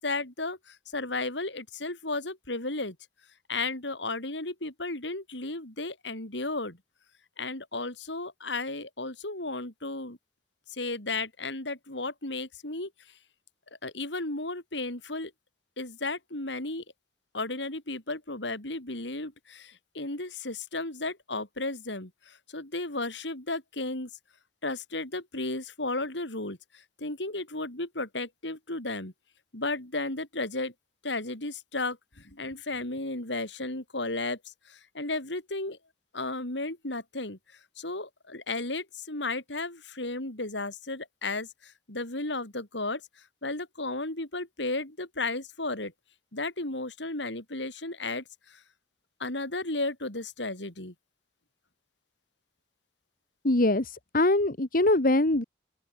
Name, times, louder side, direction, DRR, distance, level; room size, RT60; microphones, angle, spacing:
voice 1, 0.0-3.0 3.5-6.8 7.4-10.2 10.7-12.9 13.8-15.3 15.8-16.8 17.3-24.1 24.6-29.1 29.5-30.7 31.0-34.4 34.6-35.8 36.1-37.4 37.8-43.0 43.4-45.9 46.3-48.6 49.2-50.9, left 2 dB, 75° left, 5.1 m, -34 dB
voice 2, 53.4-55.4, left 2 dB, 50° left, 1.7 m, -23 dB
open air
head